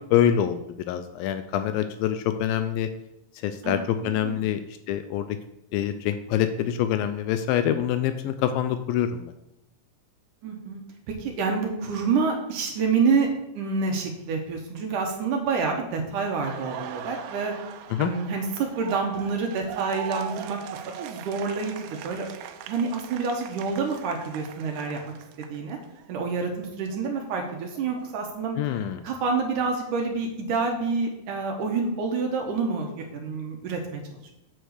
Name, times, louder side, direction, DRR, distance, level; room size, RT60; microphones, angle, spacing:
voice 1, 0.1-0.6 0.9-2.9 3.4-4.6 4.9-5.4 5.7-9.3 17.9-18.1 28.6-29.0, left 10 dB, 80° left, 9 dB, 2.2 m, -25 dB
voice 2, 3.6-4.5 10.4-10.8 11.1-13.3 13.5-17.5 18.0-22.3 22.7-25.1 25.5-25.8 26.1-28.6 29.0-34.2, right 4 dB, 65° right, 2 dB, 2.4 m, -28 dB
Laughter, 16.2-26.1 26.4-28.4, right 10 dB, 85° right, 2.6 m, -41 dB
8.0 x 4.4 x 6.5 m, 0.89 s
omnidirectional pair, 4.3 m